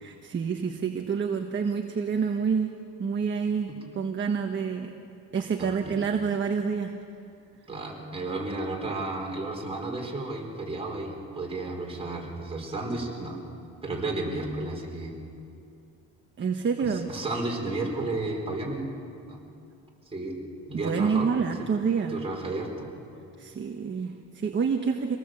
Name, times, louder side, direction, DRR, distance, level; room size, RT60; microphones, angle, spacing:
voice 1, 0.0-2.7 3.0-4.9 5.3-6.9 16.4-17.1 20.7-22.2 23.4-25.2, right 6 dB, 30° right, 4 dB, 1.3 m, -28 dB
voice 2, 5.6-6.0 7.7-13.4 13.8-15.1 16.8-18.9 19.3-19.4 20.1-20.4 20.7-21.3 22.1-22.9, right 2 dB, 15° right, -2 dB, 4.4 m, -33 dB
26.0 x 18.5 x 7.8 m, 2.6 s
cardioid pair, 135°, 37 cm